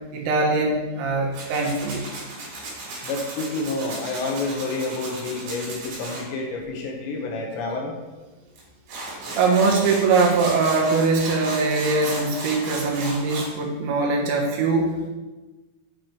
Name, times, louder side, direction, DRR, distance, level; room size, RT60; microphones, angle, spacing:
voice 1, 0.1-2.0 9.4-15.0, right 3 dB, 75° right, -1 dB, 3.4 m, -22 dB
Tools, 1.3-6.2 8.6-8.7 8.9-13.5, right 2 dB, 60° right, 4.7 m, -35 dB
voice 2, 3.0-7.9, left 3 dB, 75° left, 0 dB, 3.1 m, -29 dB
9.0 x 7.1 x 4.7 m, 1.2 s
omnidirectional pair, 5.6 m